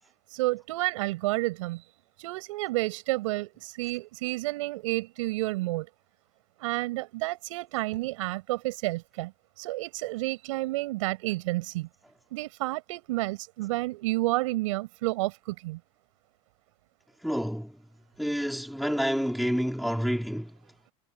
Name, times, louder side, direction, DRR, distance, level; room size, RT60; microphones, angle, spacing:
voice 1, 0.3-1.8 2.2-5.9 6.6-9.3 9.6-11.9 12.3-15.8, right 20 dB, 85° right, 8.0 m, -30 dB
voice 2, 17.2-17.8 18.2-20.6, equal, ahead, 4.5 m, -28 dB
supercardioid pair, 150°, 16 cm